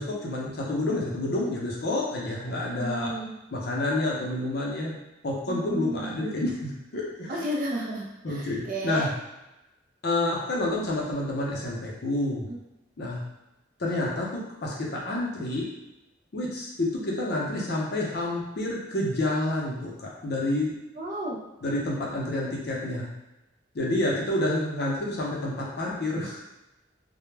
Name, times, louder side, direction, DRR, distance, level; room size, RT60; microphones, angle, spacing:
voice 1, 0.0-3.1 3.5-4.9 5.2-7.3 8.2-9.1 10.0-12.5 13.0-13.2 13.8-15.7 16.3-20.7 21.6-23.1 23.7-26.4, left 1 dB, 55° left, -4 dB, 0.5 m, -29 dB
voice 2, 2.7-3.3 5.5-6.1 7.3-9.1 12.5-12.6 21.0-21.4, right 1 dB, 45° right, -1 dB, 0.4 m, -32 dB
2.1 x 2.0 x 3.2 m, 0.97 s
head